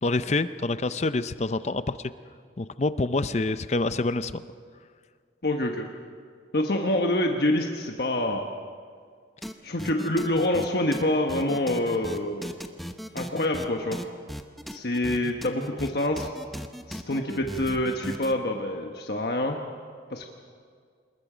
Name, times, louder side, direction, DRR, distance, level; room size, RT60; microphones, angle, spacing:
voice 1, 0.0-2.0 2.6-4.4, left 2 dB, 35° left, 13 dB, 0.5 m, -26 dB
voice 2, 5.4-5.9 6.5-8.5 9.6-12.6 13.1-14.0 14.7-16.3 16.9-19.6 20.1-20.3, left 1 dB, 55° left, 2 dB, 1.3 m, -26 dB
sound 1, 9.4-9.5 9.8-10.7 10.9-11.0 11.3-13.7 13.9-18.3, equal, ahead, 0.8 m, -37 dB
27.0 x 21.0 x 5.1 m, 2.1 s
head